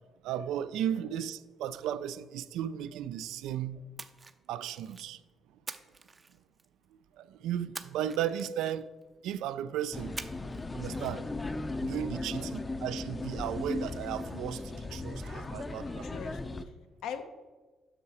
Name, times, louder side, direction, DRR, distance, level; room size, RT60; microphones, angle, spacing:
voice 1, 0.2-3.8 4.5-5.2 7.2-8.9 9.2-10.1 10.7-11.2 11.8-16.1, right 10 dB, 90° right, 0.3 m, -35 dB
Splash splatter, 4.0-5.1 5.7-6.8 7.7-9.0 10.2-10.7 10.9-11.1, right 4 dB, 30° right, 0.5 m, -45 dB
sound 1, 9.9-16.6, left 2 dB, 25° left, 0.5 m, -37 dB
voice 2, 15.9-16.7 17.0-17.2, left 8 dB, 90° left, 0.7 m, -42 dB
8.2 x 5.9 x 4.3 m
cardioid pair, 90°, 0 cm